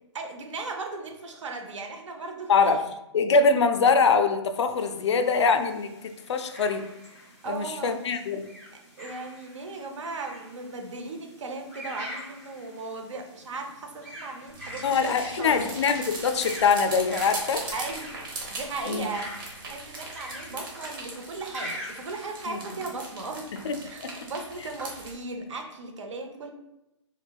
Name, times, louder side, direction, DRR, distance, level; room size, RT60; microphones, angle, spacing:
voice 1, 0.1-2.7 7.4-8.1 8.7-15.7 17.7-18.1 18.5-19.3 19.7-23.5 23.8-26.5, right 3 dB, 75° right, 4 dB, 0.7 m, -37 dB
voice 2, 3.1-6.8 7.5-8.5 14.8-17.6 18.9-19.1 22.5-22.6 23.5-24.1, left 5 dB, 65° left, 8 dB, 0.4 m, -23 dB
sound 1, 4.7-23.1, equal, 10° right, 0.5 m, -45 dB
sound 2, 14.5-25.1, right 2 dB, 45° right, 0.9 m, -40 dB
4.6 x 2.1 x 2.3 m, 0.91 s
hypercardioid pair, 175°, 16 cm